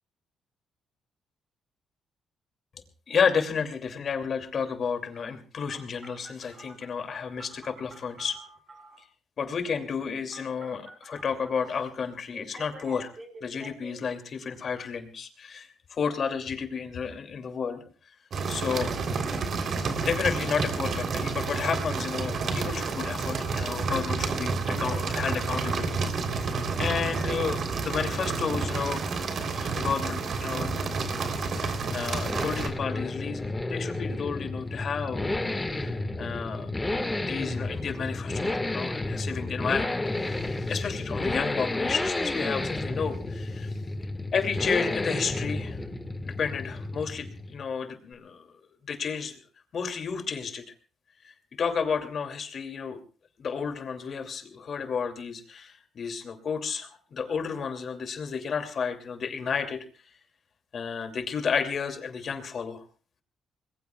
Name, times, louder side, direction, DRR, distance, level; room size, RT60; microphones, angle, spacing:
voice 1, 3.1-8.4 9.4-13.1 13.4-17.8 18.5-18.9 20.0-25.9 26.2-26.3 26.8-29.3 29.5-30.8 31.5-36.7 37.1-43.8 44.3-45.8 46.2-48.5 48.9-49.4 49.7-50.6 51.2-53.0 53.4-59.8 60.7-62.8, left 6 dB, 50° left, 6 dB, 2.6 m, -32 dB
Telephone, 5.7-9.0 10.3-11.8 12.3-13.9, right 2 dB, 30° right, 7.7 m, -48 dB
sound 1, 18.3-32.7, right 4 dB, 55° right, 3.4 m, -30 dB
sound 2, 29.6-47.7, left 2 dB, 15° left, 1.7 m, -32 dB
26.0 x 21.0 x 2.3 m, 0.38 s
cardioid pair, 90°, 0 cm